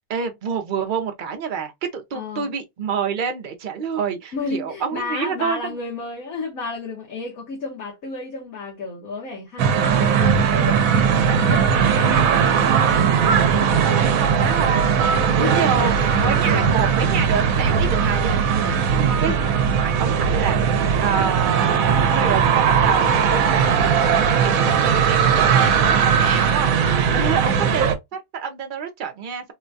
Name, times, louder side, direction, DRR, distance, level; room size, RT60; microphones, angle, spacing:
voice 1, 0.1-5.8 14.2-18.6 18.9-19.5 19.8-20.6 21.0-23.5 24.2-29.5, right 6 dB, 45° right, 0.7 m, -27 dB
voice 2, 2.1-2.5 4.3-14.0 15.3-16.1 16.4-16.6 19.3-19.5 27.0-27.6, left 4 dB, 75° left, 1.5 m, -32 dB
sound 1, 9.6-27.9, right 7 dB, 85° right, 1.1 m, -18 dB
3.8 x 2.2 x 2.6 m
omnidirectional pair, 1.5 m